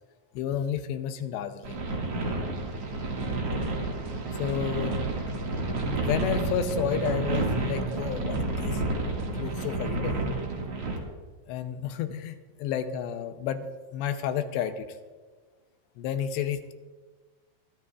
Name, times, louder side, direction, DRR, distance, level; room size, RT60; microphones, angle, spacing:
voice 1, 0.4-1.8 4.4-5.0 5.9-8.8 9.2-10.2 11.5-13.7 13.9-14.9 16.0-16.7, left 8 dB, 80° left, 8 dB, 2.8 m, -31 dB
sound 1, 1.6-11.0, right 2 dB, 45° right, 2.2 m, -30 dB
sound 2, 3.2-10.4, right 4 dB, 75° right, 1.3 m, -43 dB
24.5 x 12.5 x 2.4 m, 1.4 s
omnidirectional pair, 5.2 m